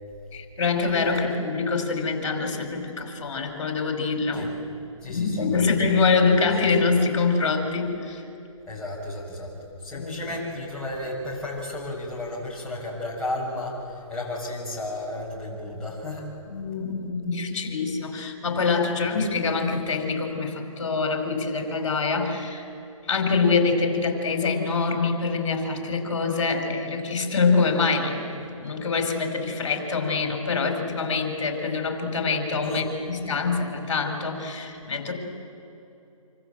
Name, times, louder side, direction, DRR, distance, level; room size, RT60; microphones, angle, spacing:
voice 1, 0.3-4.5 5.1-8.2 10.0-10.2 16.5-22.7 23.1-35.1, left 4 dB, 55° left, 4 dB, 5.2 m, -25 dB
voice 2, 5.0-6.0 8.7-9.5 9.8-16.3 32.6-32.9, left 1 dB, 5° left, -7 dB, 6.7 m, -33 dB
26.5 x 25.0 x 7.7 m, 2.8 s
hypercardioid pair, 150°, 18 cm